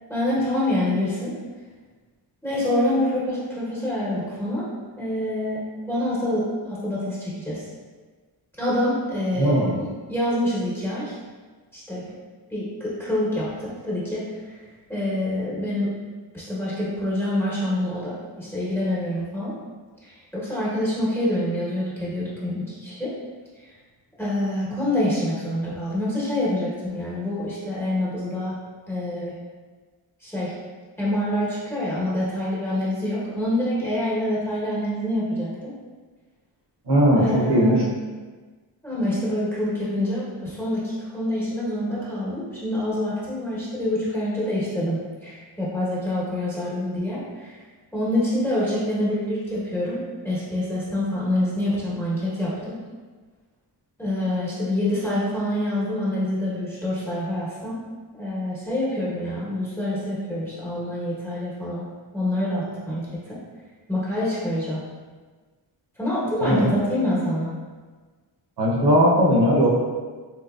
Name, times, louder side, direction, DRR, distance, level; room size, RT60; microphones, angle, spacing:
voice 1, 0.1-1.3 2.4-4.7 5.0-5.6 5.9-7.6 8.6-11.2 11.7-12.0 12.5-14.5 14.9-15.9 16.3-19.5 20.0-23.1 24.2-28.5 28.9-29.3 30.2-30.5 31.0-35.7 37.1-37.8 38.8-47.5 47.9-52.7 54.0-57.8 58.1-61.8 62.1-63.4 63.9-64.8 66.0-67.5, left 1 dB, 5° left, -8 dB, 1.1 m, -26 dB
voice 2, 9.4-9.8 36.9-37.8 66.4-66.8 68.6-69.7, equal, 65° right, -4 dB, 0.8 m, -18 dB
3.9 x 2.9 x 2.4 m, 1.4 s
wide cardioid pair, 125°, 44 cm